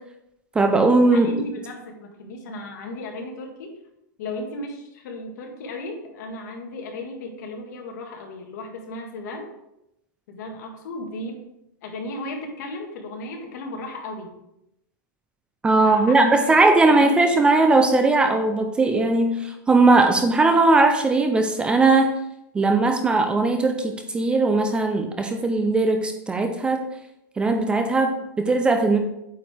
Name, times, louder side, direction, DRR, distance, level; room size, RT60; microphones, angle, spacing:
voice 1, 0.5-1.3 15.6-22.1 22.5-26.8 27.4-29.0, right 3 dB, 10° right, 5 dB, 0.4 m, -19 dB
voice 2, 1.1-3.8 4.2-9.5 10.3-11.4 11.8-14.3 15.8-17.5, left 2 dB, 60° left, 2 dB, 1.6 m, -35 dB
8.4 x 4.6 x 3.4 m, 0.84 s
supercardioid pair, 160°, 11 cm